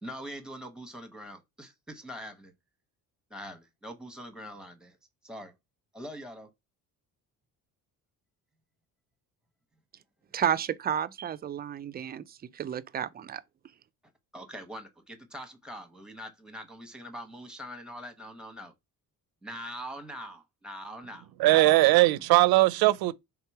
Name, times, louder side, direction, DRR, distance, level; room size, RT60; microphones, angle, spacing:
voice 1, 0.0-2.5 3.3-5.0 5.2-5.5 5.9-6.5 14.3-18.7 19.4-21.3 21.6-21.7, equal, ahead, 1.0 m, -43 dB
voice 2, 10.3-13.4, right 9 dB, 30° right, 0.3 m, -31 dB
voice 3, 21.4-23.1, right 18 dB, 80° right, 0.5 m, -20 dB
3.6 x 2.9 x 4.7 m
cardioid pair, 115°, 36 cm